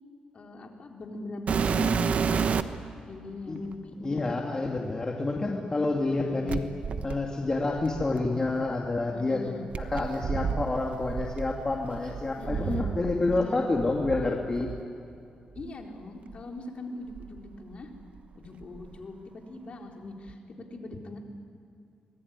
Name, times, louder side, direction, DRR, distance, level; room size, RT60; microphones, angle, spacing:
voice 1, 0.3-2.6 3.1-4.4 6.1-6.7 9.1-9.6 12.4-12.9 13.3-13.6 15.5-17.9 18.3-21.2, left 2 dB, 50° left, 1 dB, 4.0 m, -41 dB
sound 1, 1.5-2.9 3.7-3.8 6.5-8.6 9.7-13.5 13.7-14.8 15.6-15.7 16.3-16.4 17.1-18.2 18.4-19.0 20.3-20.4, right 6 dB, 60° right, 1.1 m, -31 dB
voice 2, 4.0-6.6 7.0-9.5 9.8-14.7, left 2 dB, 25° left, 0 dB, 2.4 m, -28 dB
25.0 x 21.0 x 9.7 m, 2.6 s
cardioid pair, 85°, 3 cm